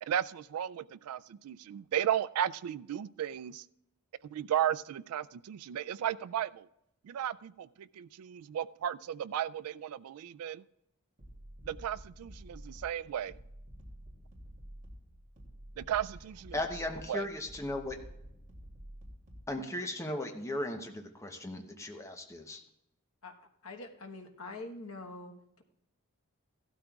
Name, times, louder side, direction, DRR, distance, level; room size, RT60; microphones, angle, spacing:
voice 1, 0.0-3.7 4.2-6.7 7.0-10.6 11.6-13.4 15.8-16.6 17.1-17.3, right 10 dB, 85° right, 18 dB, 0.3 m, -35 dB
sound 1, 11.2-19.5, equal, 40° right, 2.6 m, -50 dB
voice 2, 16.5-18.0 19.5-22.6, left 1 dB, 15° left, 4 dB, 0.8 m, -37 dB
voice 3, 23.6-25.3, left 2 dB, 70° left, 3 dB, 1.2 m, -44 dB
16.0 x 12.5 x 2.4 m, 0.82 s
head